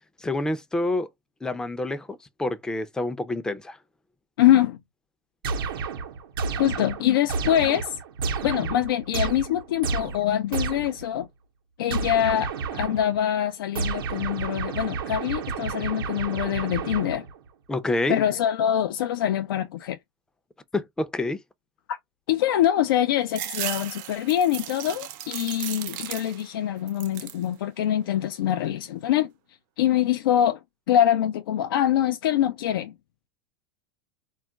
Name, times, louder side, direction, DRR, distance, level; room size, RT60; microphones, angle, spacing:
voice 1, 0.2-1.1 1.4-3.8 17.7-18.2 20.7-21.4, left 2 dB, 5° left, 0.4 m, -27 dB
voice 2, 4.4-4.8 6.6-8.0 8.4-11.3 11.8-17.3 18.1-20.0 21.9-22.0 22.3-29.3 29.8-30.6 30.9-32.9, left 11 dB, 85° left, 0.4 m, -24 dB
sound 1, 5.4-11.1 11.9-13.2 13.7-17.4, right 5 dB, 90° right, 0.8 m, -31 dB
sound 2, 23.3-26.6 26.9-27.5 27.9-28.7, right 13 dB, 60° right, 0.5 m, -36 dB
2.3 x 2.1 x 3.7 m
supercardioid pair, 125°, 12 cm